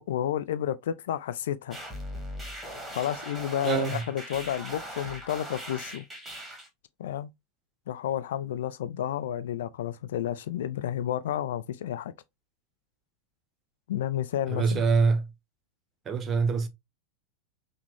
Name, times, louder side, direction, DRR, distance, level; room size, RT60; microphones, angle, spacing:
voice 1, 0.0-1.8 2.9-6.1 7.0-7.3 7.9-12.1 13.9-14.8, left 11 dB, 60° left, 0.4 m, -31 dB
sound 1, 1.7-6.7, equal, 5° right, 1.5 m, -40 dB
voice 2, 3.6-4.0 14.5-15.3 16.1-16.7, right 4 dB, 25° right, 0.7 m, -24 dB
5.8 x 2.2 x 3.2 m
figure-of-eight pair, 90°, 0 cm